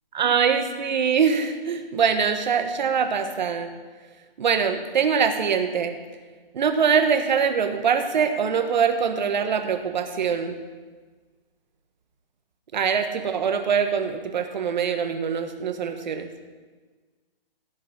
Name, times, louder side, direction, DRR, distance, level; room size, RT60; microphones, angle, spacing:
voice 1, 0.1-3.7 4.4-5.9 6.5-10.6 12.7-16.3, right 6 dB, 50° right, 7 dB, 1.3 m, -23 dB
16.0 x 6.0 x 6.2 m, 1.4 s
hypercardioid pair, 165°, 29 cm